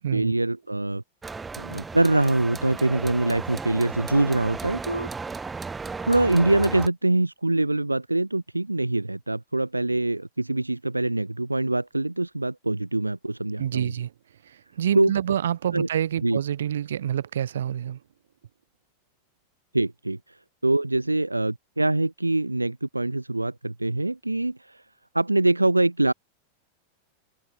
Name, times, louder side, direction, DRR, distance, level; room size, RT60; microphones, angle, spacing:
voice 1, 0.1-1.0 1.6-5.1 6.0-13.9 15.0-15.1 15.7-15.9 16.2-16.4 19.7-20.2 20.6-24.8 25.1-26.1, right 2 dB, 85° right, 2.0 m, -24 dB
sound 1, 1.2-6.9, right 4 dB, 15° right, 6.1 m, -35 dB
voice 2, 13.6-14.1 14.8-18.0, right 10 dB, 65° right, 2.9 m, -27 dB
open air
figure-of-eight pair, 90°, 0 cm